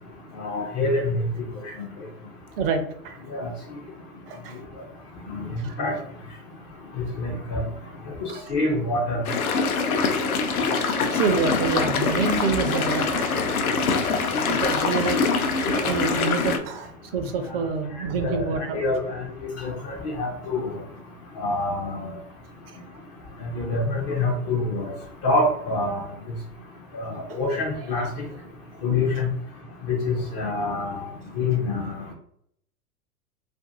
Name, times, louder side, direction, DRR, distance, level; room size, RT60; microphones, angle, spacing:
voice 1, 0.4-1.1 1.8-1.9 3.3-3.5 5.3-5.5 5.8-6.0 7.2-7.6 8.2-9.2 18.2-18.4 18.7-19.3 19.6-20.7 21.4-22.1 23.6-24.9 25.2-26.1 26.9-28.1 28.8-29.3 29.9-31.0 31.4-32.0, left 2 dB, 25° left, -1 dB, 0.3 m, -26 dB
voice 2, 2.6-3.2 4.3-4.6 5.6-5.7 8.3-8.5 11.1-13.3 14.4-15.2 15.7-18.8 27.3-27.4, right 5 dB, 45° right, 7 dB, 0.5 m, -27 dB
sound 1, 9.3-16.6, left 4 dB, 75° left, 0.6 m, -24 dB
sound 2, 10.5-16.2, right 4 dB, 80° right, 0.8 m, -39 dB
2.6 x 2.5 x 2.4 m, 0.69 s
figure-of-eight pair, 100°, 44 cm